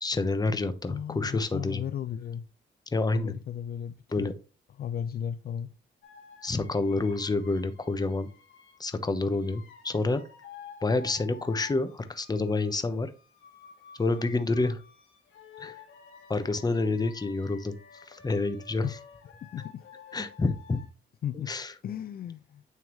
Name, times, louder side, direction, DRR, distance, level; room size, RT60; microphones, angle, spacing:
voice 1, 0.0-1.8 2.9-3.3 4.1-4.3 6.4-8.3 8.8-10.2 10.8-13.1 14.0-14.8 15.6-15.8 16.3-17.8 18.1-18.9 20.1-20.8 21.5-21.7, left 3 dB, 20° left, 0.9 m, -28 dB
voice 2, 0.9-2.5 3.1-4.3 4.8-5.7 18.8-19.0 19.4-19.8 21.2-21.6 21.8-22.6, left 9 dB, 50° left, 0.4 m, -35 dB
sound 1, 6.0-8.8 9.2-20.9, left 7 dB, 90° left, 2.0 m, -51 dB
9.1 x 3.5 x 3.1 m
cardioid pair, 90°, 20 cm